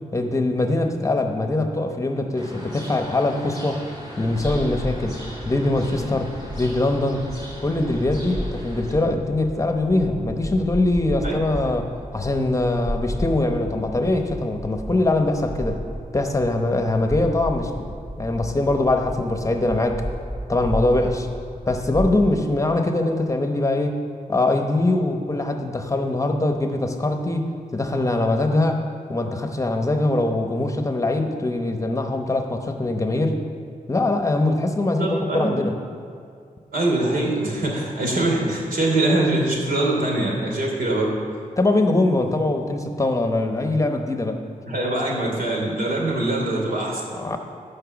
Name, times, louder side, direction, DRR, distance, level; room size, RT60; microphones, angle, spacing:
voice 1, 0.1-3.8 4.2-5.2 5.4-7.3 7.6-15.8 16.1-17.9 18.2-20.0 20.5-21.3 21.7-24.0 24.3-28.8 29.1-33.4 33.9-35.8 41.6-44.4 47.1-47.4, left 2 dB, 20° left, 5 dB, 0.8 m, -22 dB
sound 1, 2.3-8.9, equal, 35° right, 2.6 m, -38 dB
sound 2, 4.3-22.1, equal, 10° right, 2.7 m, -33 dB
voice 2, 34.9-35.5 36.7-41.1 44.6-47.0, right 2 dB, 80° right, -2 dB, 3.0 m, -23 dB
15.0 x 5.6 x 7.1 m, 2.4 s
wide cardioid pair, 135°, 14 cm